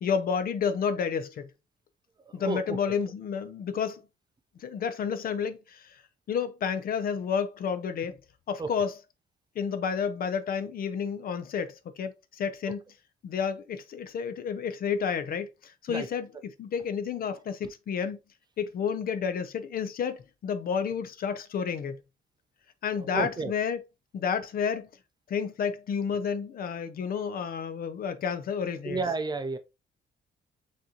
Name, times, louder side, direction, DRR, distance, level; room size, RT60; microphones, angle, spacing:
voice 1, 0.0-1.5 2.3-4.0 4.6-6.0 6.3-8.2 8.5-8.9 9.6-12.8 13.2-18.2 18.6-22.0 22.8-23.8 24.1-24.9 25.3-29.0, left 6 dB, 55° left, 0.6 m, -30 dB
voice 2, 2.3-2.8 8.6-8.7 15.9-16.1 23.0-23.5 28.8-29.6, right 3 dB, 25° right, 0.5 m, -31 dB
6.2 x 2.8 x 2.8 m
cardioid pair, 140°, 19 cm